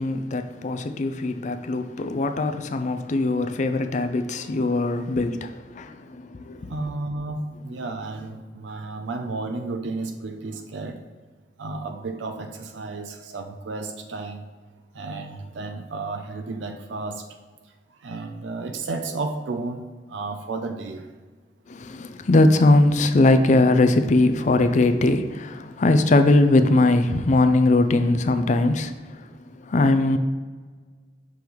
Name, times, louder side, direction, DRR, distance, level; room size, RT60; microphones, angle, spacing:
voice 1, 0.0-6.8 21.7-29.3 29.6-30.2, left 2 dB, 40° left, 0.4 m, -20 dB
voice 2, 6.7-11.0 11.6-14.5 14.9-17.2 18.0-21.0, right 3 dB, 80° right, 0.5 m, -32 dB
6.0 x 3.1 x 5.2 m
head